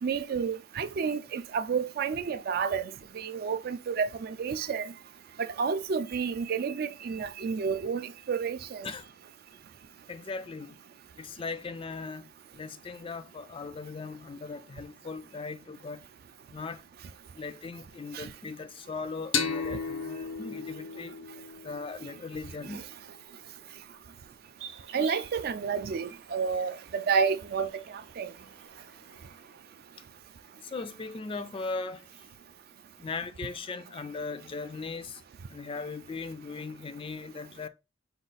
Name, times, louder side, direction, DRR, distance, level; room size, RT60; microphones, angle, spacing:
voice 1, 0.0-4.9 5.4-8.9 18.1-18.3 22.7-22.8 24.9-27.8 28.2-28.3, right 6 dB, 55° right, 0.4 m, -30 dB
voice 2, 10.1-10.8 11.2-12.3 12.5-16.0 16.5-16.8 17.3-21.2 21.6-22.8 30.6-32.1 33.0-35.2 35.5-37.7, left 4 dB, 30° left, 0.3 m, -38 dB
sound 1, 19.3-22.7, left 5 dB, 85° left, 0.6 m, -34 dB
sound 2, 24.6-29.6, right 7 dB, 70° right, 0.7 m, -50 dB
5.2 x 2.4 x 3.9 m
head